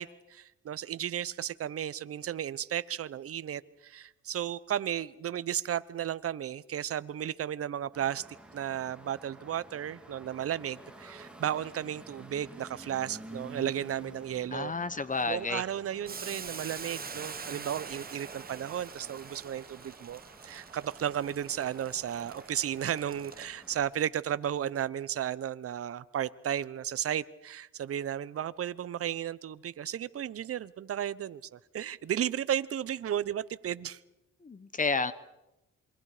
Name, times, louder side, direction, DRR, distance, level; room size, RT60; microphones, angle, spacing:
voice 1, 0.0-8.3 8.5-14.7 15.3-34.0, right 10 dB, 50° right, 16 dB, 0.9 m, -34 dB
sound 1, 7.9-23.8, right 2 dB, 5° right, 3.4 m, -51 dB
voice 2, 14.5-15.6 34.4-35.1, left 4 dB, 25° left, 15 dB, 1.2 m, -31 dB
Boiling, 16.1-23.8, right 5 dB, 30° right, 1.3 m, -45 dB
27.5 x 22.5 x 5.0 m, 0.95 s
cardioid pair, 90°, 30 cm